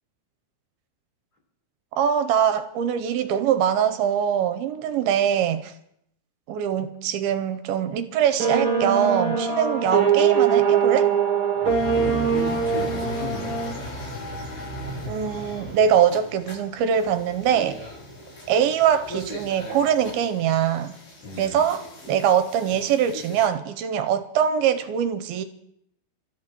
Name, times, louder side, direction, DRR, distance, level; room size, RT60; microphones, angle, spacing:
voice 1, 2.0-5.7 6.5-11.1 15.1-17.8 18.5-20.9 21.4-25.4, right 8 dB, 80° right, 9 dB, 2.5 m, -23 dB
sound 1, 8.4-13.7, right 7 dB, 40° right, 2.1 m, -22 dB
sound 2, 11.6-23.5, equal, 70° left, 8.4 m, -37 dB
voice 2, 11.6-13.5 21.2-21.6, left 2 dB, 45° left, 0 dB, 5.0 m, -34 dB
29.0 x 13.5 x 3.0 m, 0.75 s
omnidirectional pair, 4.5 m